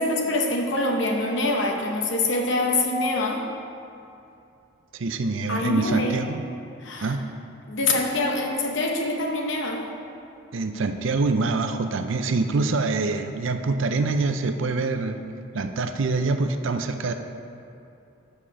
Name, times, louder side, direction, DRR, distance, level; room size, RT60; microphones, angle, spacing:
voice 1, 0.0-3.4 5.5-6.2 6.8-7.1 7.7-9.8, left 2 dB, 55° left, 1 dB, 0.9 m, -25 dB
voice 2, 4.9-6.4 7.0-7.2 10.5-15.2 15.5-17.1, right 3 dB, 65° right, 8 dB, 0.5 m, -25 dB
6.7 x 5.6 x 6.2 m, 2.7 s
head